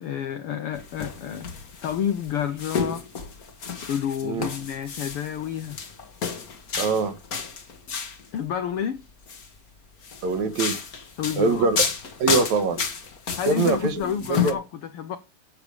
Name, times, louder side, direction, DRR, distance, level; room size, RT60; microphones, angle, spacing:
voice 1, 0.0-1.5 1.8-3.1 3.9-5.8 8.3-9.0 11.2-11.7 13.3-14.6 14.9-15.2, left 8 dB, 75° left, 1.3 m, -29 dB
sound 1, 0.7-8.3 9.1-9.5 10.0-14.5, left 6 dB, 40° left, 1.3 m, -31 dB
voice 2, 6.8-7.2 10.2-10.8 11.4-11.9 12.2-12.8 13.5-14.6, right 4 dB, 65° right, 2.5 m, -23 dB
13.0 x 7.0 x 5.1 m
omnidirectional pair, 3.7 m